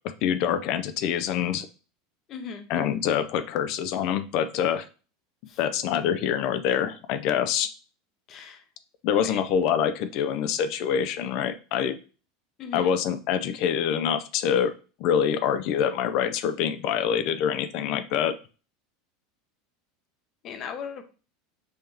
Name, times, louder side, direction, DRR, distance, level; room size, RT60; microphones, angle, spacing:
voice 1, 0.2-1.7 2.7-4.9 5.6-7.7 9.0-12.0 12.7-14.7 15.0-18.3, left 8 dB, 55° left, 10 dB, 0.4 m, -25 dB
voice 2, 2.3-2.7 5.5-5.6 8.3-8.6 9.1-9.4 12.6-13.0 20.4-21.0, left 6 dB, 40° left, 8 dB, 0.8 m, -38 dB
5.5 x 2.8 x 3.3 m, 0.35 s
supercardioid pair, 135°, 0 cm